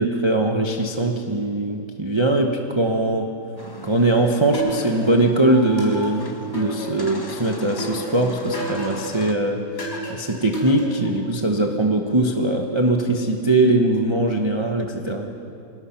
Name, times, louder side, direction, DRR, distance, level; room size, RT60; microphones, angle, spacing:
voice 1, 0.0-3.3 3.8-9.6 10.1-15.3, right 2 dB, 20° right, 2 dB, 1.0 m, -21 dB
sound 1, 3.6-9.3, left 2 dB, 20° left, 0.7 m, -39 dB
sound 2, 4.5-5.3 5.8-7.2 7.8-9.2 9.8-11.2, right 2 dB, 40° left, 5.3 m, -31 dB
27.0 x 18.5 x 5.9 m, 2.6 s
omnidirectional pair, 1.8 m